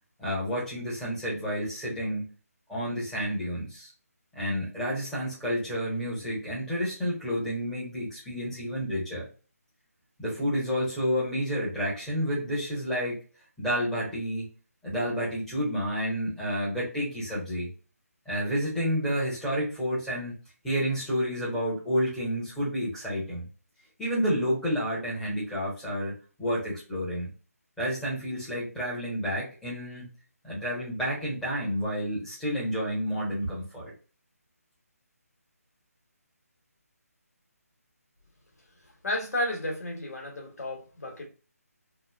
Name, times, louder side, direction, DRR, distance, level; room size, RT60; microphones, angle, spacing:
voice 1, 0.2-2.3 2.7-3.9 4.3-9.3 10.2-13.2 13.6-14.5 14.8-17.7 18.2-20.3 20.6-23.4 24.0-26.1 26.4-27.3 27.8-30.1 30.4-33.9, equal, 5° left, -9 dB, 1.0 m, -30 dB
voice 2, 39.0-41.3, left 1 dB, 75° left, 1 dB, 1.5 m, -32 dB
3.0 x 2.4 x 2.4 m, 0.35 s
figure-of-eight pair, 165°, 9 cm